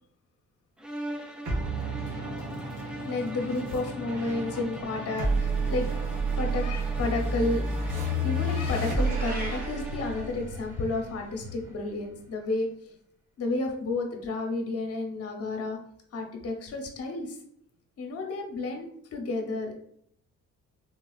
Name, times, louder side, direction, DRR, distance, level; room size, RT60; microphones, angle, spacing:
sound 1, 0.8-10.5, right 1 dB, 5° right, 0.3 m, -42 dB
sound 2, 1.5-12.2, right 1 dB, 75° right, 1.2 m, -31 dB
voice 1, 3.0-5.9 6.4-7.6 8.2-13.0 13.4-15.8 16.1-17.4 18.0-19.7, left 2 dB, 50° left, 3 dB, 0.8 m, -31 dB
Meow, 8.9-9.7, right 1 dB, 30° right, 1.0 m, -39 dB
3.7 x 2.3 x 2.3 m, 0.69 s
cardioid pair, 90°, 30 cm